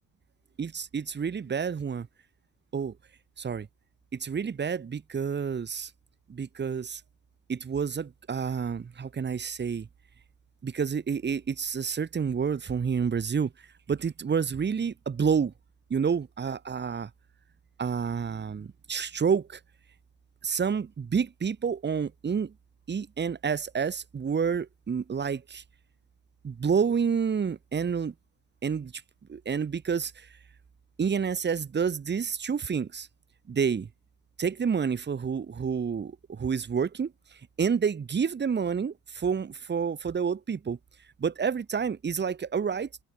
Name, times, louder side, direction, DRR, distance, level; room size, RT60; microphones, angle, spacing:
voice 1, 0.6-2.1 2.7-2.9 3.4-3.7 4.1-5.9 6.3-7.0 7.5-9.9 10.6-13.5 13.9-15.5 15.9-17.1 17.8-19.6 20.4-22.5 22.9-25.6 26.4-28.1 28.6-29.0 29.3-30.3 31.0-33.1 33.5-33.9 34.4-37.1 37.6-40.8 41.2-42.9, right 6 dB, 30° right, 2.7 m, -29 dB
open air
cardioid pair, 115°, 36 cm